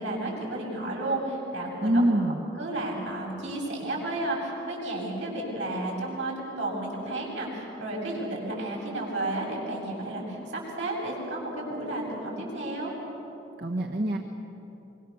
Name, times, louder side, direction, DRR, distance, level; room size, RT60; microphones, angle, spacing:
voice 1, 0.0-2.0 2.6-12.9, right 2 dB, 90° right, -3 dB, 7.9 m, -32 dB
voice 2, 1.8-2.4 13.6-14.2, right 1 dB, 65° right, 0 dB, 1.5 m, -24 dB
25.0 x 25.0 x 7.2 m, 3.0 s
head